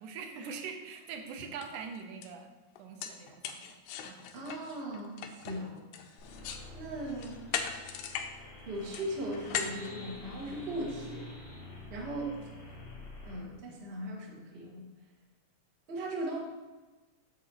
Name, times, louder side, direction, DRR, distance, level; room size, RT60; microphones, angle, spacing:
voice 1, 0.0-2.5 2.8-4.2, right 5 dB, 90° right, 4 dB, 2.3 m, -43 dB
sound 1, 1.1-1.2 1.6-1.8 2.2-2.3 2.8-6.7 7.0-8.3 8.6-10.7, left 8 dB, 85° left, 2.1 m, -39 dB
voice 2, 4.3-5.8 6.7-7.5 7.9-8.2 8.6-11.3 11.9-12.3 13.2-14.8 15.9-16.4, right 1 dB, 35° right, -3 dB, 1.1 m, -38 dB
sound 2, 6.2-13.4, left 1 dB, 60° left, 3.3 m, -47 dB
8.6 x 6.7 x 3.0 m, 1.2 s
omnidirectional pair, 3.5 m